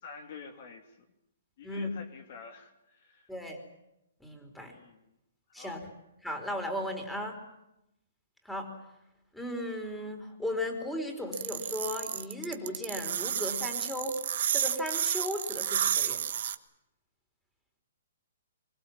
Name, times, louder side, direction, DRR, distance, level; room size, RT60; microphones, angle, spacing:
voice 1, 0.0-1.0 1.6-3.3 4.6-5.1 5.6-5.8, left 5 dB, 50° left, 5 dB, 2.9 m, -48 dB
voice 2, 4.2-4.7 5.5-5.8 6.2-7.4 8.4-8.7 9.3-14.2 14.5-16.2, left 1 dB, 5° left, 3 dB, 4.6 m, -36 dB
sound 1, 11.3-16.6, right 9 dB, 60° right, 1.4 m, -31 dB
25.0 x 24.0 x 7.4 m, 0.87 s
hypercardioid pair, 145°, 0 cm